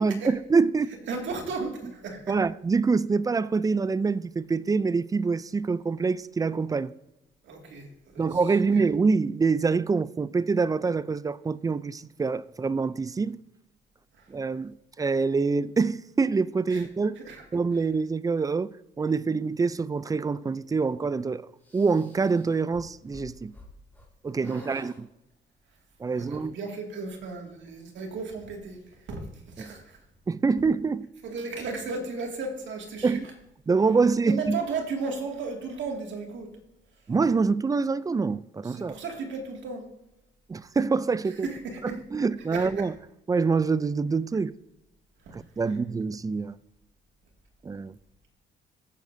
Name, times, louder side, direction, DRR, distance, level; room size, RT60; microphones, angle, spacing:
voice 1, 0.0-0.9 2.3-6.9 8.2-13.4 14.3-17.2 17.5-18.7 19.0-21.5 21.7-23.5 24.2-25.1 26.0-26.6 29.6-29.7 30.3-31.1 33.0-33.3 33.7-34.6 37.1-39.0 40.5-41.5 41.8-43.0 43.3-44.5 45.3-46.6 47.6-47.9, right 4 dB, 20° right, 0.3 m, -25 dB
voice 2, 1.1-2.4 7.4-7.9 8.1-8.4 8.7-8.8 14.2-14.3 16.7-16.8 17.2-17.4 24.4-24.8 26.1-28.8 29.1-29.3 29.6-30.0 31.2-33.2 34.2-36.5 38.6-39.8 41.4-42.0 42.5-42.9 45.3-45.4, right 4 dB, 70° right, 2.2 m, -35 dB
sound 1, 21.6-24.1 24.4-25.0, left 2 dB, 10° left, 2.1 m, -50 dB
15.5 x 7.3 x 2.7 m
cardioid pair, 90°, 20 cm